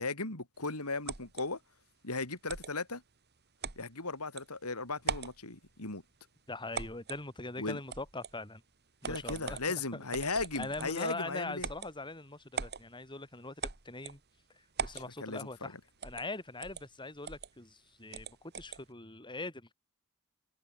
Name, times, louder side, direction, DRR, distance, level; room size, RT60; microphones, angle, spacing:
voice 1, 0.0-1.6 2.0-3.0 3.8-6.0 7.6-7.8 9.0-11.7 14.9-15.7, left 3 dB, 85° left, 4.4 m, -37 dB
sound 1, 1.1-1.4 2.5-2.7 3.6-3.8 4.4-4.5 5.0-5.4 6.7-7.2 7.9-8.3 9.0-9.7 10.1-11.0 11.6-11.9 12.5-12.8 13.6-14.2 14.8-15.1 16.0-16.3 16.6-16.8 17.2-17.5 18.1-18.8, right 5 dB, 50° right, 2.1 m, -39 dB
voice 2, 6.5-8.6 9.0-9.6 10.2-13.6 13.9-14.2 14.8-15.8 16.0-19.7, left 2 dB, 20° left, 3.8 m, -42 dB
head